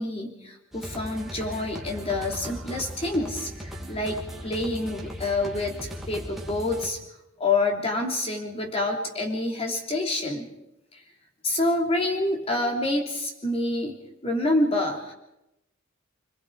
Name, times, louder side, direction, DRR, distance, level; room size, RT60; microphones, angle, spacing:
voice 1, 0.0-7.0 7.4-10.5 10.9-11.0 11.4-14.0 14.2-15.1, left 2 dB, 30° left, 1 dB, 3.3 m, -27 dB
sound 1, 0.7-6.9, equal, ahead, 2.6 m, -38 dB
26.5 x 21.0 x 5.0 m, 0.89 s
head